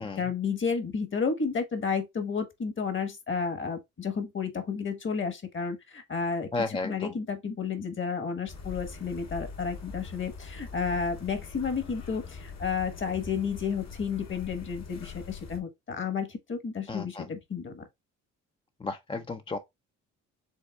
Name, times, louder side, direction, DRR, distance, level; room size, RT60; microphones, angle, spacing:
voice 1, 0.0-17.8, left 5 dB, 40° left, 1.2 m, -32 dB
voice 2, 6.5-7.1 16.9-17.3 18.8-19.6, left 3 dB, 15° left, 0.4 m, -33 dB
sound 1, 8.5-15.6, left 4 dB, 60° left, 1.3 m, -42 dB
5.3 x 3.4 x 2.3 m
cardioid pair, 90°, 30 cm